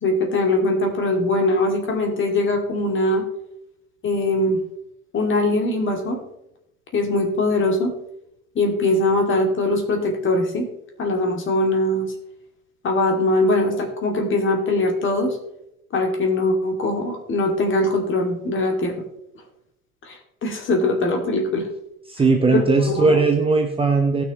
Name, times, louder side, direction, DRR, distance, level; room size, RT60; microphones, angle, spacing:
voice 1, 0.0-3.3 4.0-4.6 5.1-6.2 6.9-7.9 8.6-10.7 11.0-12.1 12.8-15.4 15.9-18.9 20.1-21.7 22.5-22.6 22.9-23.2, left 2 dB, 25° left, 3 dB, 2.3 m, -21 dB
voice 2, 22.1-24.2, right 4 dB, 15° right, 4 dB, 1.0 m, -18 dB
19.0 x 6.3 x 3.0 m, 0.83 s
figure-of-eight pair, 85°, 43 cm